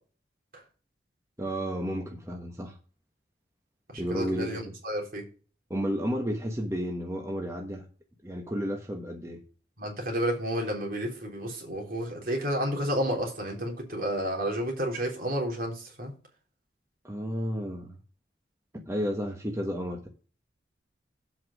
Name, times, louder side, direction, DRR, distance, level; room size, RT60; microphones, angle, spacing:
voice 1, 1.4-2.8 4.0-4.6 5.7-7.9 8.2-9.4 17.0-18.0 18.9-20.1, equal, 15° right, 1.2 m, -32 dB
voice 2, 3.9-5.2 9.8-16.1, equal, 55° right, 3.5 m, -31 dB
8.1 x 5.8 x 6.2 m
head